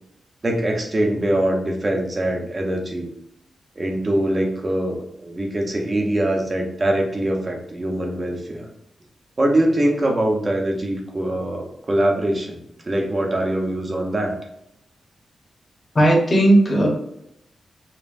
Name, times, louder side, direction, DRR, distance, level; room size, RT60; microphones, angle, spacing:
voice 1, 0.4-3.1 3.8-8.7 9.4-14.4, right 1 dB, 30° right, 1 dB, 0.7 m, -23 dB
voice 2, 15.9-16.9, right 1 dB, 30° left, -2 dB, 1.0 m, -15 dB
5.2 x 2.1 x 2.5 m, 0.77 s
wide cardioid pair, 130°, 0 cm